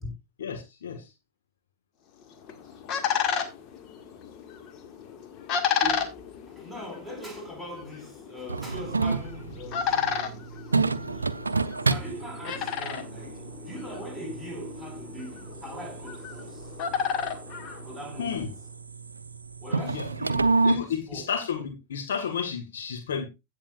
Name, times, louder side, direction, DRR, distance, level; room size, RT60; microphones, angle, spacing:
voice 1, 0.4-1.1 11.0-11.1 18.2-18.5 19.9-20.1 20.6-23.3, left 7 dB, 60° left, 1.5 m, -32 dB
sound 1, 2.2-18.5, left 7 dB, 35° left, 1.7 m, -33 dB
voice 2, 5.8-10.5 11.8-16.7 17.8-18.5 19.6-20.5 20.8-21.2, equal, 10° left, 5.0 m, -41 dB
sound 2, 8.5-20.8, right 4 dB, 80° right, 0.6 m, -30 dB
16.0 x 7.2 x 2.4 m
figure-of-eight pair, 90°, 0 cm